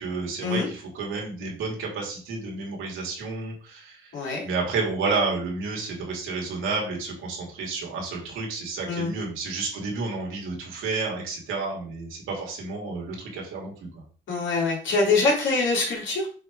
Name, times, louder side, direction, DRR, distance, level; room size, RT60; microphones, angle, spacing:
voice 1, 0.0-4.1 4.4-13.7, right 4 dB, 85° right, -1 dB, 2.5 m, -30 dB
voice 2, 4.1-4.4 8.9-9.1 14.3-16.3, left 3 dB, 70° left, -1 dB, 3.2 m, -24 dB
6.4 x 3.4 x 4.7 m, 0.42 s
cardioid pair, 90°, 20 cm